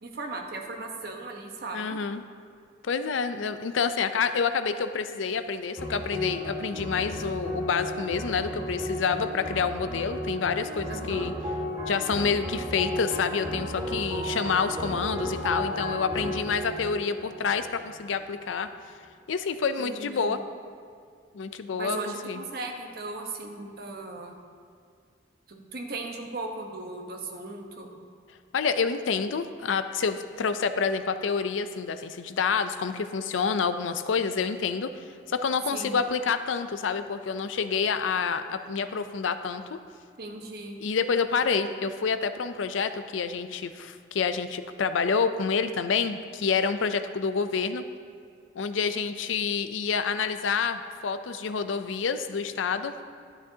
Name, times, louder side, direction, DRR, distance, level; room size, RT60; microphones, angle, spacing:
voice 1, 0.0-2.0 10.9-11.3 19.8-20.4 21.8-24.4 25.5-28.0 35.7-36.0 40.2-40.8, right 2 dB, 55° right, 2 dB, 1.0 m, -37 dB
voice 2, 1.7-2.2 2.8-11.3 11.9-18.7 19.3-20.4 21.3-22.0 22.2-22.4 28.5-34.9 35.3-39.8 40.8-47.8 48.6-53.0, left 5 dB, 85° left, 10 dB, 0.5 m, -28 dB
sound 1, 5.8-18.2, left 1 dB, 20° right, 2.1 m, -34 dB
11.5 x 9.9 x 2.8 m, 2.2 s
head